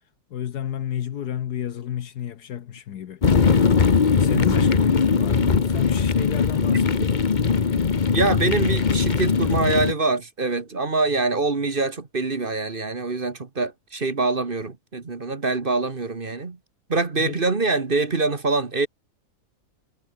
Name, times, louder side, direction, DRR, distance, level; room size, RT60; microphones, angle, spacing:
voice 1, 0.3-3.2 4.2-7.2 17.2-17.4, left 10 dB, 70° left, 1.5 m, -30 dB
sound 1, 3.2-9.9, left 5 dB, 35° left, 1.0 m, -20 dB
voice 2, 8.1-16.6 16.9-18.9, right 3 dB, 35° right, 1.6 m, -24 dB
omnidirectional pair, 1.8 m